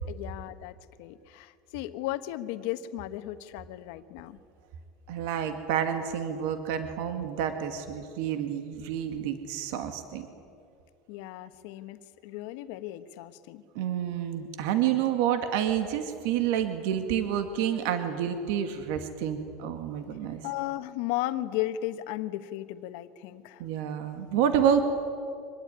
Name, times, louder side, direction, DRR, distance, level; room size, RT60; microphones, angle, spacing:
voice 1, 0.1-4.4 11.1-13.6 20.4-23.6, left 14 dB, 65° left, 10 dB, 1.3 m, -35 dB
voice 2, 5.1-10.3 13.8-20.4 23.6-24.8, right 9 dB, 70° right, 7 dB, 2.1 m, -29 dB
25.5 x 20.5 x 9.7 m, 2.4 s
cardioid pair, 160°, 0 cm